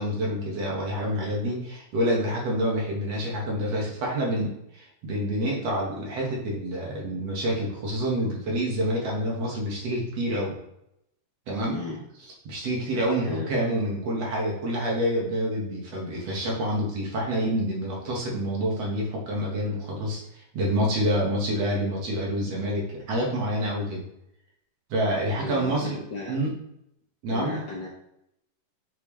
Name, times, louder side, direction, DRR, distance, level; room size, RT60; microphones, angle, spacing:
voice 1, 0.0-10.5 11.5-11.8 12.4-24.0 24.9-26.0 26.3-26.5 27.2-27.6, equal, 55° right, -3 dB, 2.7 m, -27 dB
voice 2, 25.4-26.4 27.3-27.9, left 3 dB, 65° left, -4 dB, 1.1 m, -35 dB
8.8 x 4.6 x 3.4 m, 0.79 s
omnidirectional pair, 3.6 m